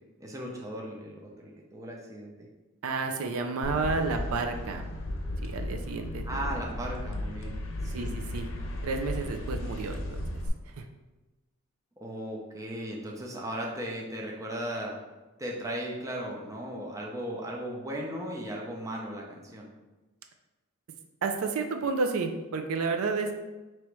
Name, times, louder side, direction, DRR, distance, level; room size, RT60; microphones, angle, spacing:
voice 1, 0.2-2.5 6.3-8.1 12.0-15.0 15.4-19.7, right 1 dB, 15° right, -2 dB, 0.6 m, -37 dB
voice 2, 2.8-4.8 5.4-6.5 7.9-8.5 8.8-10.2 10.7-10.9 21.2-23.4, right 4 dB, 75° right, 5 dB, 0.4 m, -31 dB
sound 1, 3.6-10.5, left 1 dB, 65° left, 0.6 m, -35 dB
3.1 x 3.0 x 4.6 m, 1.1 s
head